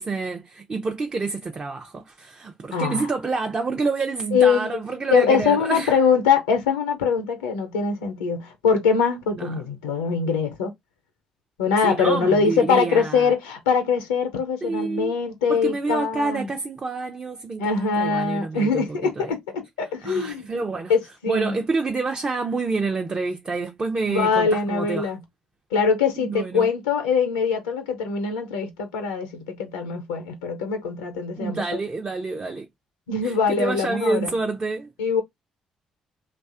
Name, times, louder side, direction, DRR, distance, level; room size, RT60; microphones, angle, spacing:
voice 1, 0.0-6.0 9.3-9.5 11.8-13.3 14.6-15.1 15.5-19.3 20.0-20.9 21.3-25.1 26.2-26.7 31.4-32.7 33.2-34.9, right 3 dB, 35° right, 0.4 m, -28 dB
voice 2, 2.7-3.1 4.3-4.8 5.1-10.7 11.6-16.5 17.6-20.5 20.9-21.6 24.1-25.2 25.7-31.6 33.1-34.3 35.0-35.2, left 5 dB, 90° left, 0.5 m, -23 dB
2.6 x 2.2 x 2.4 m
hypercardioid pair, 50°, 3 cm